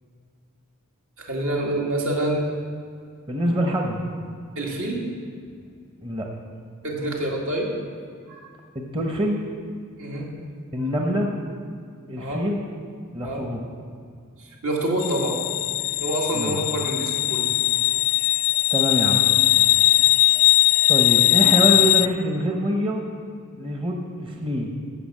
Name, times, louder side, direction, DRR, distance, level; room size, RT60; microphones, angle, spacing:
voice 1, 1.2-2.5 4.6-5.0 6.8-7.7 8.3-8.4 10.0-10.3 12.2-12.4 13.2-13.5 14.6-15.4 16.0-17.5, right 1 dB, 70° right, -2 dB, 2.2 m, -26 dB
voice 2, 3.3-4.0 6.0-6.3 8.7-9.4 10.7-11.3 12.1-12.6 13.1-13.6 16.3-16.6 18.7-19.3 20.9-23.0 23.6-24.7, equal, 25° right, 1 dB, 0.9 m, -25 dB
sound 1, 15.0-22.1, left 19 dB, 80° left, 0.3 m, -19 dB
14.0 x 5.9 x 7.5 m, 2.3 s
head